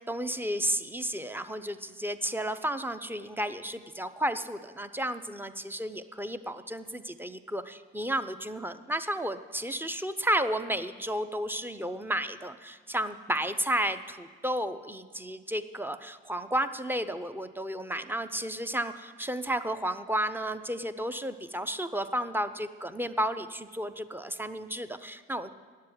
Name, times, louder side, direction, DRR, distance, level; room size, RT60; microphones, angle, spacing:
voice 1, 0.1-25.5, right 1 dB, 5° right, 11 dB, 0.7 m, -32 dB
9.5 x 7.5 x 9.0 m, 1.5 s
hypercardioid pair, 50°, 32 cm